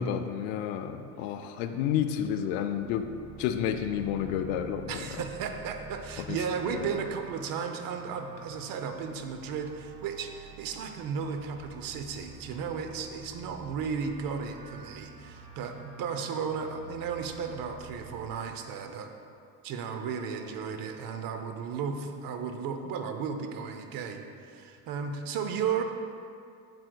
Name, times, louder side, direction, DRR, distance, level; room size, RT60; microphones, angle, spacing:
voice 1, 0.0-3.0 3.4-5.2 6.2-6.4 6.6-7.0, left 9 dB, 80° left, 7 dB, 0.6 m, -31 dB
sound 1, 2.4-18.3, right 4 dB, 85° right, 0.9 m, -48 dB
voice 2, 4.9-19.1 19.6-25.8, right 6 dB, 55° right, 6 dB, 0.7 m, -34 dB
7.6 x 7.6 x 2.3 m, 2.4 s
supercardioid pair, 95°, 41 cm